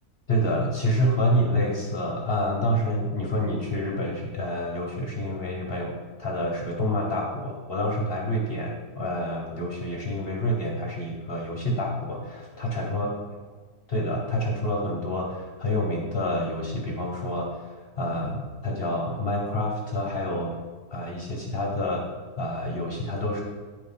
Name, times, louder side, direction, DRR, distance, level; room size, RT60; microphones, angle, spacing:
voice 1, 0.3-13.1 13.9-20.5 20.9-22.1 22.4-23.4, left 1 dB, 45° left, -1 dB, 1.1 m, -28 dB
9.2 x 4.1 x 5.6 m, 1.4 s
omnidirectional pair, 1.6 m